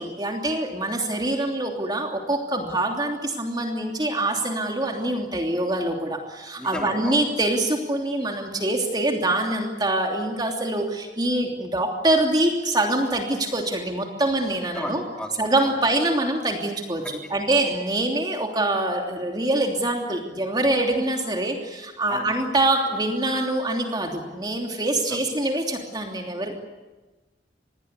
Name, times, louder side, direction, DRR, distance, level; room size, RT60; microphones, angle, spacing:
voice 1, 0.0-15.0 15.4-26.5, right 1 dB, 25° right, 2 dB, 3.0 m, -25 dB
voice 2, 6.6-7.2 14.7-15.7 17.0-17.3 22.1-22.3 25.1-25.2, equal, 5° left, 1 dB, 3.7 m, -35 dB
26.5 x 21.5 x 8.4 m, 1.2 s
head